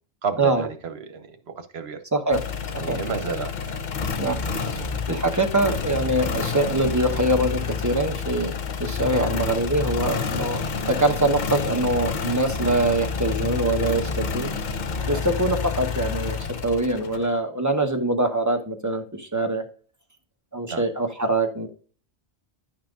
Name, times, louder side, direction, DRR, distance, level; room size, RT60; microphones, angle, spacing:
voice 1, 0.2-2.0 2.8-4.1 4.5-5.0 15.0-15.2 20.7-20.9, right 5 dB, 80° right, 1.2 m, -33 dB
voice 2, 2.1-2.4 2.9-3.0 4.2-4.4 5.1-10.6 10.9-14.5 15.1-19.6 20.5-21.7, right 2 dB, 20° right, 0.9 m, -23 dB
sound 1, 2.3-17.4, left 5 dB, 55° left, 0.7 m, -29 dB
10.0 x 5.8 x 2.5 m
omnidirectional pair, 1.1 m